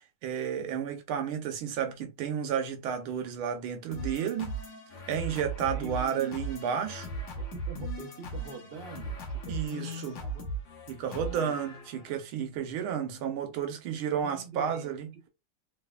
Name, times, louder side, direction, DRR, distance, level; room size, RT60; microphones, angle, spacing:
voice 1, 0.2-4.5 5.1-7.1 9.5-10.2 10.9-15.1, right 8 dB, 80° right, 1.6 m, -32 dB
sound 1, 3.9-12.1, right 2 dB, 65° left, 1.8 m, -38 dB
voice 2, 5.7-6.4 7.4-10.5 11.1-11.7 12.9-13.3 14.0-15.3, right 5 dB, 60° right, 0.6 m, -46 dB
4.1 x 3.1 x 2.2 m
omnidirectional pair, 2.3 m